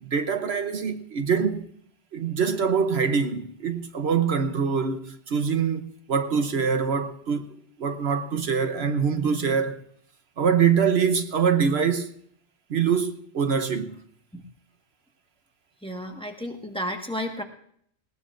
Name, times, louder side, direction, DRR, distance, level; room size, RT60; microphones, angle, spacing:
voice 1, 0.0-1.6 2.1-7.5 7.8-9.8 10.4-12.1 12.7-14.0, right 6 dB, 65° right, 1.1 m, -24 dB
voice 2, 15.8-17.4, equal, 5° left, 1.3 m, -32 dB
19.5 x 18.5 x 2.5 m
omnidirectional pair, 1.2 m